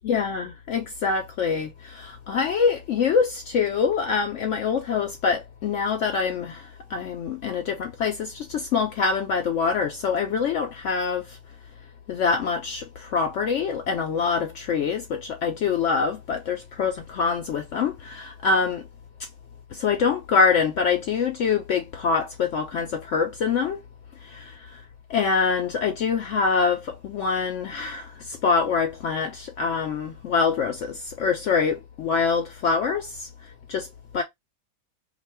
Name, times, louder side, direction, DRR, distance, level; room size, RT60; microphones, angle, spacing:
voice 1, 0.0-11.4 12.1-18.8 19.7-23.8 24.2-24.8 25.1-33.3 33.7-33.9 34.1-34.2, left 5 dB, 65° left, 0.8 m, -25 dB
2.7 x 2.4 x 4.2 m
omnidirectional pair, 1.5 m